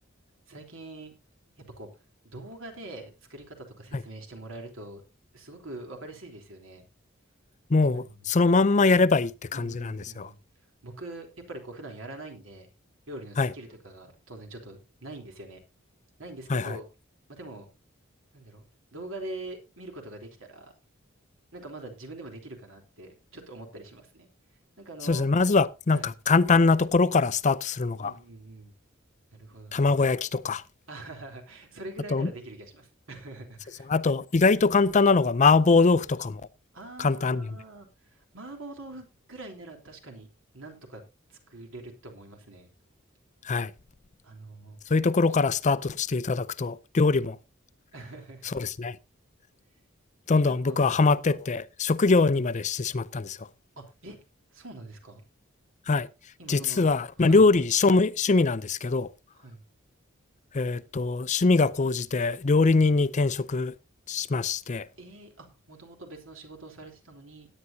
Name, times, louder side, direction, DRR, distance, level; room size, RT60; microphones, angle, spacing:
voice 1, 0.5-1.1 1.8-1.9 2.2-5.0 5.3-6.8 7.9-8.3 9.5-10.4 10.8-12.7 13.1-15.6 16.2-16.9 17.3-17.7 18.3-18.7 18.9-20.7 21.5-24.3 24.8-25.3 25.9-26.1 28.0-28.7 29.3-30.0 30.9-33.9 36.7-40.3 40.5-41.0 41.3-42.7 44.2-44.8 47.9-48.5 50.5-51.1 53.8-54.2 54.5-55.2 56.4-56.9 57.2-57.4 59.3-59.6 65.0-67.5, right 2 dB, 75° right, 3.5 m, -43 dB
voice 2, 7.7-10.3 13.4-13.5 16.5-16.8 25.0-28.1 29.7-30.6 32.1-32.3 33.9-36.4 37.0-37.5 43.4-43.7 44.9-47.4 48.5-49.0 50.3-53.5 55.9-56.1 56.5-59.1 60.5-63.7 64.1-64.9, left 3 dB, 35° left, 0.5 m, -23 dB
17.5 x 9.8 x 2.7 m
head